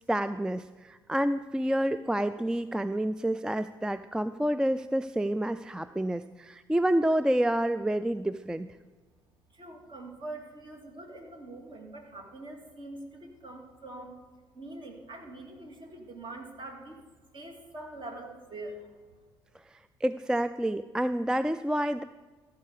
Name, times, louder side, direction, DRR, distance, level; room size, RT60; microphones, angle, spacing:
voice 1, 0.1-8.7 20.0-22.0, right 1 dB, 5° right, 13 dB, 0.3 m, -28 dB
voice 2, 9.5-14.1 14.5-17.0 17.3-19.0, right 2 dB, 40° right, 2 dB, 2.4 m, -44 dB
14.5 x 4.8 x 6.6 m, 1.3 s
hypercardioid pair, 50°, 12 cm